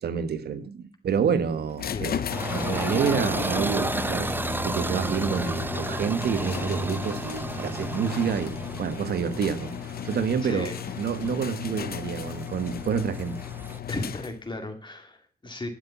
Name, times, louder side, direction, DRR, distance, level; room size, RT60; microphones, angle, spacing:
voice 1, 0.0-2.2 2.5-4.3 4.6-9.7 10.0-10.7 11.0-13.4, right 7 dB, 85° right, 1.3 m, -28 dB
sound 1, 1.8-14.6, left 9 dB, 70° left, 0.7 m, -35 dB
voice 2, 1.9-2.2 10.4-10.8 13.9-15.7, left 2 dB, 30° left, 2.3 m, -35 dB
sound 2, 2.3-13.8, right 2 dB, 10° right, 0.7 m, -33 dB
12.0 x 7.2 x 6.9 m
cardioid pair, 70°, 16 cm